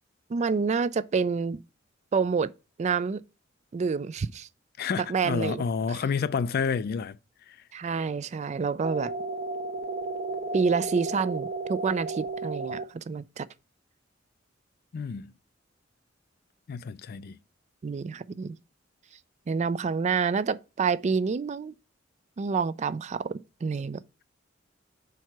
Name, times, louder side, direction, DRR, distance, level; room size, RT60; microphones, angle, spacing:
voice 1, 0.3-1.6 2.1-2.5 2.8-3.2 3.7-4.5 5.1-6.0 7.7-9.1 10.5-13.5 17.8-18.6 19.5-21.7 22.4-24.0, right 5 dB, 35° right, 0.3 m, -28 dB
voice 2, 4.8-7.2 7.5-7.6 14.9-15.3 16.7-17.4, left 5 dB, 55° left, 0.4 m, -29 dB
sound 1, 8.8-12.8, right 3 dB, 55° right, 0.8 m, -33 dB
4.7 x 4.4 x 5.8 m
head